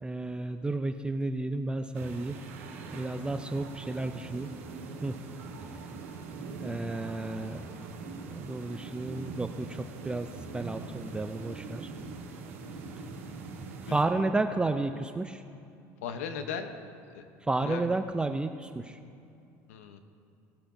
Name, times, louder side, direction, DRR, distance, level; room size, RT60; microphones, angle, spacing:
voice 1, 0.0-2.4 2.9-4.5 5.0-5.1 6.6-7.6 8.3-10.3 10.5-11.9 13.9-15.4 17.5-19.0, right 2 dB, 15° right, 7 dB, 0.4 m, -32 dB
sound 1, 1.9-14.0, right 4 dB, 90° right, 1.7 m, -42 dB
voice 2, 13.9-14.4 16.0-16.7 17.1-17.2 17.6-17.9 19.7-20.0, left 7 dB, 85° left, 8 dB, 0.9 m, -38 dB
17.5 x 8.4 x 2.7 m, 2.6 s
supercardioid pair, 95°, 7 cm